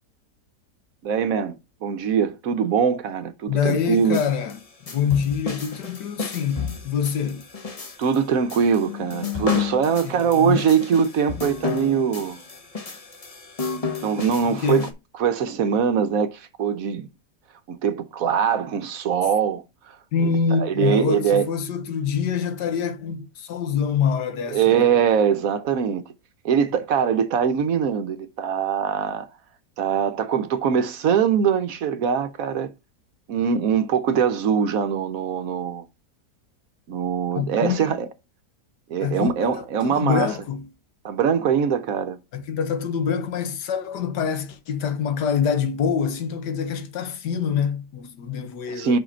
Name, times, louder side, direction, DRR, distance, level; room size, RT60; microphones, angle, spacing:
voice 1, 1.0-1.6 1.8-4.2 8.0-12.4 14.0-14.9 15.2-17.1 17.7-20.0 20.6-21.4 24.5-26.0 26.4-29.3 29.8-32.7 33.3-35.8 36.9-38.1 38.9-40.3 41.0-42.2 48.7-49.0, right 7 dB, 65° right, 1.0 m, -22 dB
voice 2, 3.5-7.4 10.0-10.6 14.5-14.9 20.1-24.9 37.4-37.9 39.0-40.7 42.3-49.0, left 7 dB, 85° left, 1.6 m, -25 dB
sound 1, 3.9-14.9, left 5 dB, 30° left, 0.7 m, -32 dB
5.8 x 4.9 x 4.3 m
omnidirectional pair, 1.8 m